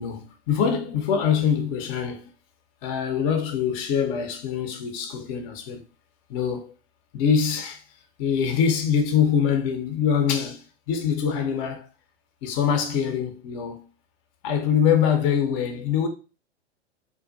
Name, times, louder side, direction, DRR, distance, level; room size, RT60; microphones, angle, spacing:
voice 1, 0.0-2.3 2.8-5.8 6.3-6.7 7.1-7.8 8.2-11.9 12.4-13.8 14.4-16.1, left 7 dB, 30° left, 0.5 m, -24 dB
2.3 x 2.2 x 2.4 m
hypercardioid pair, 110°, 35 cm